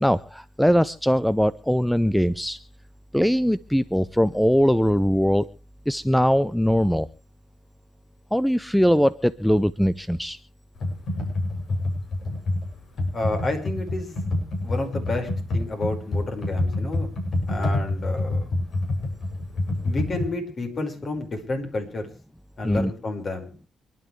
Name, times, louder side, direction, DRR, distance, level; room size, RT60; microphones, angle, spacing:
voice 1, 0.0-2.6 3.1-5.5 5.9-7.1 8.3-10.4 22.6-22.9, equal, ahead, 16 dB, 0.6 m, -21 dB
Computer keyboard, 10.8-20.3, left 2 dB, 60° left, 7.9 m, -27 dB
voice 2, 13.1-14.2 14.6-17.1 17.5-18.5 19.8-22.1 22.6-23.5, left 2 dB, 40° left, 5 dB, 5.3 m, -30 dB
27.0 x 11.0 x 3.3 m, 0.35 s
cardioid pair, 90°, 0 cm